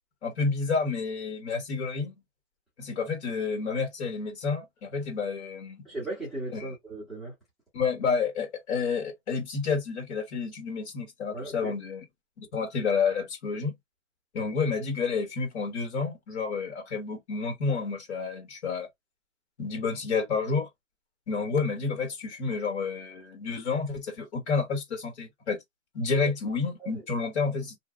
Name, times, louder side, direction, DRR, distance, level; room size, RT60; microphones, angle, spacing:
voice 1, 0.2-2.1 2.8-5.8 6.5-6.7 7.7-12.0 12.4-13.7 14.3-18.9 19.6-20.7 21.3-25.6 25.9-27.8, left 5 dB, 55° left, 1.4 m, -30 dB
voice 2, 5.8-7.3 11.3-11.7 26.1-26.3 26.8-27.0, right 2 dB, ahead, 0.7 m, -37 dB
2.6 x 2.3 x 2.4 m
hypercardioid pair, 155°, 40 cm